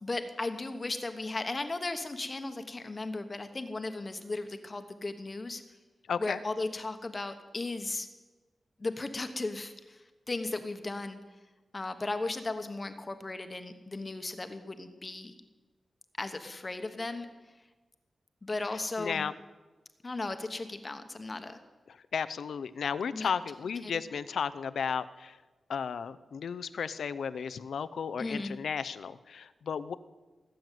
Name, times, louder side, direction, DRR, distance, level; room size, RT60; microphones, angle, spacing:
voice 1, 0.0-5.6 6.2-8.1 8.8-11.2 11.7-15.4 16.2-17.3 18.4-19.3 20.0-21.6 23.1-23.3 23.8-24.0 28.2-28.6, left 2 dB, 30° left, 8 dB, 1.1 m, -36 dB
voice 2, 6.1-6.4 18.7-19.3 21.9-25.4 25.7-29.9, left 6 dB, 90° left, 14 dB, 0.6 m, -34 dB
18.5 x 7.8 x 9.2 m, 1.2 s
wide cardioid pair, 120°, 0 cm